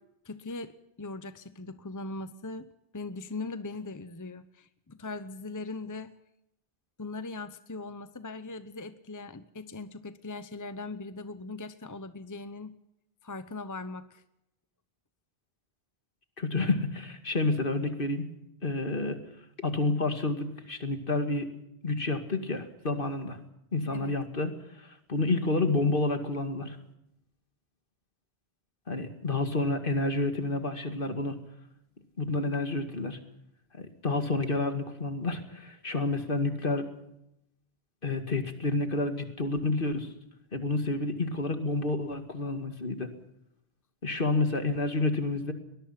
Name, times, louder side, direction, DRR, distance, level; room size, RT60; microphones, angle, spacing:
voice 1, 0.2-2.7 2.9-6.1 7.0-12.7 13.2-14.2 23.9-24.2, left 3 dB, 20° left, 11 dB, 0.9 m, -40 dB
voice 2, 16.4-18.3 18.6-19.2 19.6-21.5 21.8-23.4 23.7-24.5 25.1-26.8 28.9-31.4 32.2-33.2 33.8-36.9 38.0-40.1 40.5-43.1 44.0-45.5, left 2 dB, 55° left, 7 dB, 2.4 m, -29 dB
22.5 x 20.5 x 5.8 m, 0.83 s
omnidirectional pair, 1.1 m